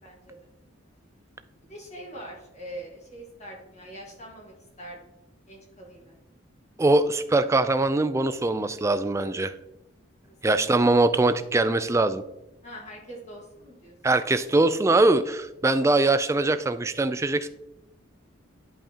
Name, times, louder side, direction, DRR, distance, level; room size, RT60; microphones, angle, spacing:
voice 1, 0.0-0.4 1.7-5.1 5.5-6.1 10.3-10.7 12.6-13.9, right 1 dB, 35° left, -2 dB, 1.6 m, -43 dB
voice 2, 6.8-9.5 10.4-12.2 14.0-17.5, right 2 dB, 15° right, 11 dB, 0.3 m, -22 dB
11.0 x 5.5 x 2.9 m, 0.90 s
head